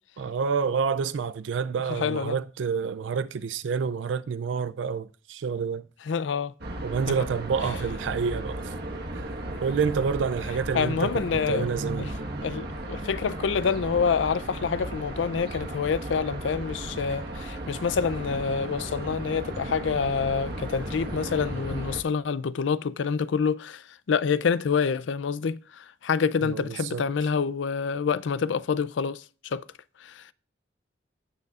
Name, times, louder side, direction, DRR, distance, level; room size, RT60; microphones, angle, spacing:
voice 1, 0.2-5.9 6.8-8.8 9.1-9.3 9.6-12.1 26.4-27.0, right 6 dB, 85° right, 0.4 m, -28 dB
voice 2, 1.9-2.4 6.1-6.5 7.1-7.2 10.7-11.7 12.0-12.1 12.4-23.8 24.1-29.2 29.5-29.6, left 6 dB, 90° left, 0.4 m, -27 dB
sound 1, 6.6-22.0, right 1 dB, 60° right, 1.4 m, -35 dB
16.0 x 6.6 x 2.4 m
head